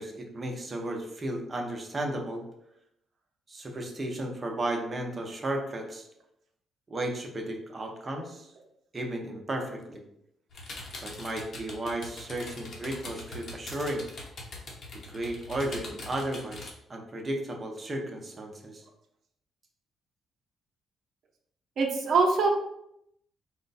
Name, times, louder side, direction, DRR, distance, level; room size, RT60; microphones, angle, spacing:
voice 1, 0.0-2.4 3.5-6.1 6.9-8.5 8.9-10.0 11.0-14.1 15.1-18.8, right 1 dB, 30° right, 2 dB, 0.8 m, -34 dB
sound 1, 10.5-16.7, left 2 dB, 60° left, 1.1 m, -42 dB
voice 2, 21.8-22.5, right 4 dB, 60° right, 2 dB, 0.8 m, -23 dB
4.4 x 2.2 x 4.1 m, 0.78 s
cardioid pair, 105°, 0 cm